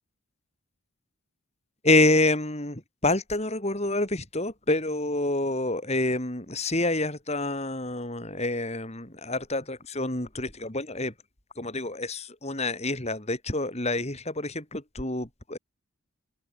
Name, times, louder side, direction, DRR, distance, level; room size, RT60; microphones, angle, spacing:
voice 1, 1.8-11.1 11.6-15.6, left 2 dB, 30° left, 3.3 m, -27 dB
open air
head